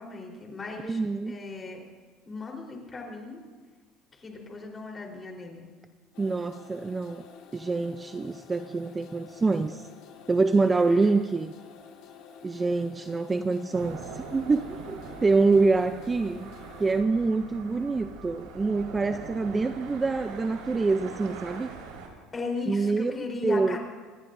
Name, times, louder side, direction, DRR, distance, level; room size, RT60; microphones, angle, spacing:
voice 1, 0.0-1.0 1.3-1.8 2.3-3.4 4.1-5.7 10.7-11.0 22.3-23.8, left 4 dB, 20° left, 0 dB, 3.8 m, -37 dB
voice 2, 0.8-1.4 6.2-7.2 7.5-9.9 10.3-11.5 12.4-16.5 16.8-21.7 22.7-23.8, right 3 dB, 15° right, 8 dB, 0.5 m, -26 dB
sound 1, 6.1-17.0, left 7 dB, 60° left, 2.7 m, -50 dB
sound 2, 13.7-22.1, right 5 dB, 90° right, 4.4 m, -42 dB
27.0 x 20.5 x 2.6 m, 1.5 s
cardioid pair, 160°, 0 cm